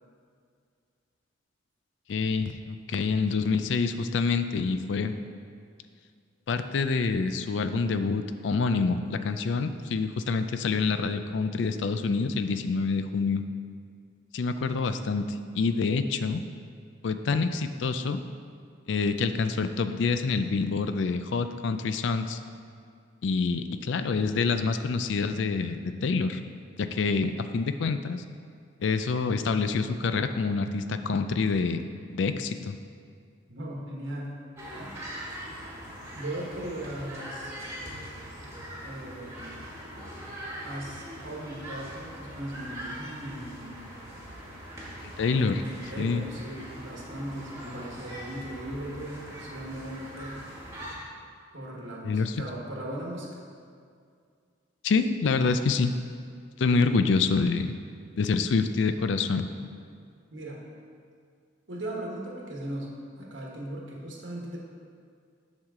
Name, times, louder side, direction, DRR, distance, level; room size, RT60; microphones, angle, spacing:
voice 1, 2.1-5.2 6.5-13.4 14.3-16.4 17.0-18.2 18.9-22.4 23.2-26.4 26.8-28.2 28.8-32.8 45.0-45.6 46.0-46.2 52.0-52.4 54.8-56.0 56.6-57.7 58.1-59.5, left 4 dB, 65° left, 10 dB, 0.4 m, -27 dB
voice 2, 33.5-34.4 34.7-35.0 35.5-35.6 35.8-37.5 38.8-39.6 40.6-43.8 45.3-50.4 51.5-53.3 59.5-59.7 60.3-60.6 61.7-64.6, right 1 dB, 75° right, -2 dB, 1.3 m, -38 dB
sound 1, 34.6-50.9, equal, 15° right, 1.3 m, -42 dB
7.4 x 6.4 x 3.7 m, 2.2 s
head